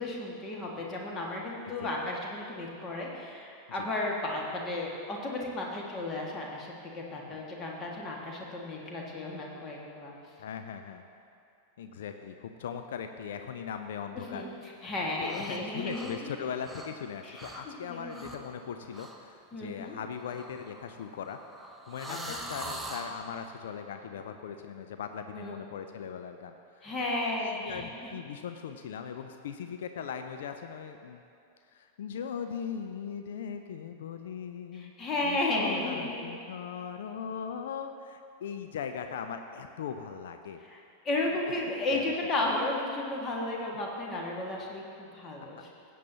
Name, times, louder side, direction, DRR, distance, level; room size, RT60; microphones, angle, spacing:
voice 1, 0.0-10.1 14.1-14.5 14.8-16.3 17.2-18.2 19.5-20.0 22.1-22.4 25.3-25.6 26.8-27.9 34.7-36.3 40.6-45.7, left 2 dB, 25° left, -2 dB, 1.9 m, -34 dB
voice 2, 10.4-11.0 11.8-14.5 15.2-21.4 21.9-26.9 27.4-31.2 31.7-34.9 35.2-40.6 41.3-42.0, left 7 dB, 60° left, 7 dB, 0.5 m, -39 dB
sound 1, 15.2-15.6 15.9-17.1 17.3-17.7 18.1-18.5 18.9-19.2 20.2-23.2, right 1 dB, 5° right, 0.9 m, -43 dB
16.5 x 9.2 x 2.9 m, 2.6 s
figure-of-eight pair, 90°, 0 cm